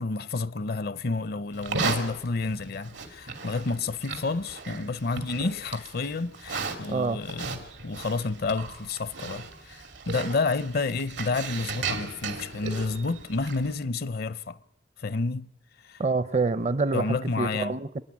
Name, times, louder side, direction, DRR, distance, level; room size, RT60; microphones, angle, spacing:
voice 1, 0.0-14.6 15.0-15.5 15.8-16.0 16.9-17.7, left 3 dB, 60° left, 0.7 m, -30 dB
Livestock farm animals working animals, 1.5-13.7, right 4 dB, 85° right, 2.7 m, -36 dB
voice 2, 6.9-7.2 16.0-18.0, right 3 dB, 40° right, 0.6 m, -27 dB
26.5 x 10.5 x 9.8 m
head